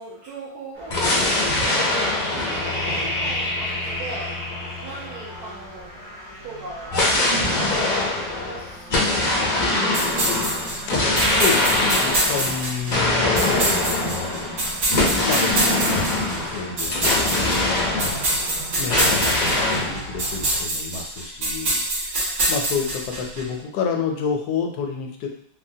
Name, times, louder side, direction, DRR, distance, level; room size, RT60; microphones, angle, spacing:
voice 1, 0.0-2.0 2.3-4.4 4.8-6.0 6.3-7.8 8.2-10.4, right 2 dB, 75° right, -9 dB, 1.4 m, -39 dB
sound 1, 0.7-20.6, right 1 dB, 45° right, 1.4 m, -39 dB
sound 2, 0.9-5.6 6.9-18.5 18.9-20.0, left 2 dB, 55° left, 0.5 m, -23 dB
sound 3, 9.9-23.4, right 1 dB, 90° right, 1.6 m, -26 dB
voice 2, 10.9-14.5 15.2-18.2 18.6-25.3, left 6 dB, 75° left, 2 dB, 1.0 m, -29 dB
3.4 x 2.1 x 2.6 m, 0.65 s
omnidirectional pair, 1.7 m